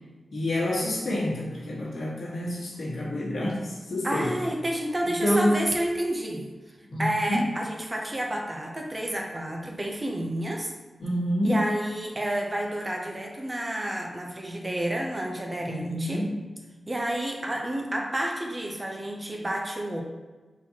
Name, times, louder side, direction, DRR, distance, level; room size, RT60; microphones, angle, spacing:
voice 1, 0.3-4.3 5.2-5.7 6.9-7.5 11.0-11.6 15.6-16.4, left 1 dB, 75° left, -6 dB, 1.3 m, -27 dB
voice 2, 4.0-6.5 7.0-10.7 11.4-16.2 16.9-20.0, right 1 dB, 20° right, 0 dB, 0.5 m, -30 dB
4.4 x 4.1 x 2.8 m, 1.3 s
wide cardioid pair, 140°, 0 cm